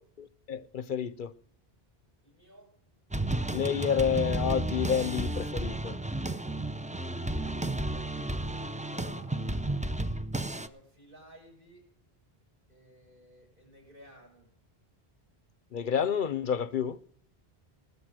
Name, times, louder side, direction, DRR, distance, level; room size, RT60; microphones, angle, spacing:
voice 1, 0.2-1.3 3.5-6.0 15.7-17.0, left 7 dB, 55° left, 0.8 m, -29 dB
voice 2, 2.2-2.8 7.8-9.9 10.5-11.9 12.7-14.5, equal, 55° right, 7.0 m, -55 dB
sound 1, 3.1-10.7, right 1 dB, 10° right, 0.4 m, -32 dB
20.0 x 6.9 x 6.2 m
omnidirectional pair, 1.0 m